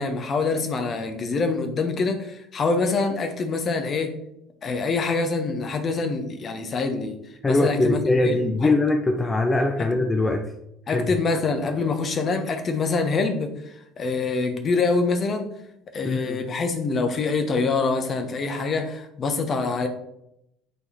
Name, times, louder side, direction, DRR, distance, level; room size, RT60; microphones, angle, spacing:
voice 1, 0.0-4.1 4.6-7.2 7.5-8.7 9.8-9.9 10.9-15.5 15.9-19.9, left 4 dB, 40° left, 6 dB, 1.2 m, -25 dB
voice 2, 7.4-10.5 10.9-11.1 16.0-16.4, left 2 dB, 20° left, 4 dB, 0.8 m, -22 dB
8.6 x 4.2 x 4.3 m, 0.80 s
figure-of-eight pair, 60°, 0 cm